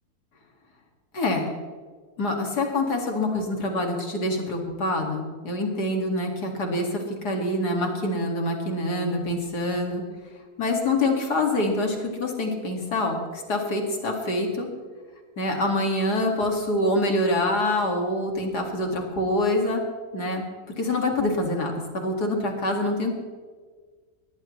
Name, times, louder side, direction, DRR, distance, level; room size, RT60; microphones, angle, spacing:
voice 1, 1.1-1.5 2.2-10.0 10.6-14.7 15.4-19.8 20.1-20.4 20.8-23.1, left 1 dB, 85° left, 1 dB, 2.8 m, -25 dB
23.0 x 19.5 x 3.2 m, 1.5 s
omnidirectional pair, 1.7 m